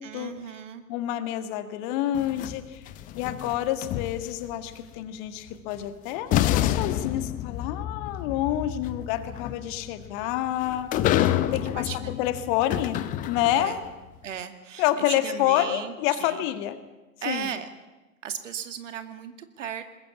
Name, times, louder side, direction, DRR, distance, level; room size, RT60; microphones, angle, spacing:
voice 1, 0.0-0.8 3.2-3.5 8.2-8.7 9.2-9.5 11.5-12.1 13.6-13.8 14.2-16.4 17.2-17.7 18.2-19.8, right 8 dB, 55° right, 9 dB, 2.2 m, -37 dB
voice 2, 0.9-2.8 3.1-10.9 11.5-11.9 12.2-13.0 13.3-13.8 14.8-16.8 17.3-17.5, left 12 dB, 35° left, 10 dB, 1.7 m, -28 dB
sound 1, 2.1-4.5 5.7-5.8 6.3-13.8, left 13 dB, 20° left, 0.8 m, -28 dB
21.5 x 20.5 x 8.5 m, 1.1 s
figure-of-eight pair, 110°, 43 cm